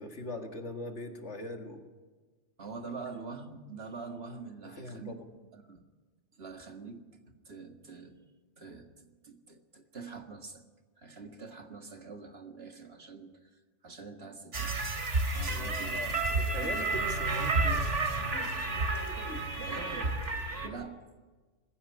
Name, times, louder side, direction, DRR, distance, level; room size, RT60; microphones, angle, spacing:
voice 1, 0.0-1.9 4.6-5.2 15.4-17.9, left 1 dB, 70° left, 4 dB, 2.3 m, -41 dB
voice 2, 2.6-5.2 5.5-5.8 6.4-7.0 7.5-8.2 8.6-10.6 11.0-13.5 13.8-14.8 15.3-16.0 19.6-20.2 20.6-21.0, right 4 dB, 55° right, 4 dB, 2.1 m, -45 dB
sound 1, 14.5-20.7, right 3 dB, 80° right, 2.8 m, -31 dB
20.5 x 16.0 x 9.7 m, 1.3 s
omnidirectional pair, 1.2 m